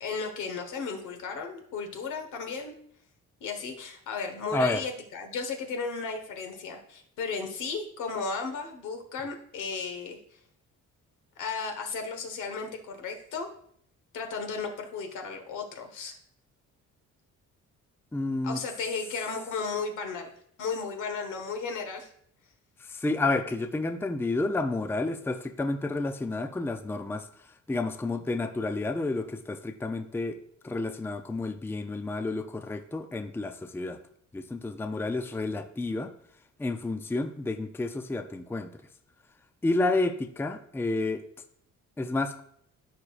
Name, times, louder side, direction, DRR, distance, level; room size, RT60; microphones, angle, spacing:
voice 1, 0.0-2.7 3.4-10.2 11.4-13.5 14.1-16.1 18.4-20.3 20.6-22.1, left 4 dB, 80° left, 4 dB, 1.4 m, -34 dB
voice 2, 4.5-4.9 18.1-18.6 22.8-27.3 27.7-30.4 30.6-34.0 34.3-36.1 36.6-38.7 39.6-41.2 42.0-42.4, left 2 dB, 10° left, 8 dB, 0.5 m, -30 dB
13.5 x 4.8 x 2.5 m, 0.66 s
cardioid pair, 90°, 30 cm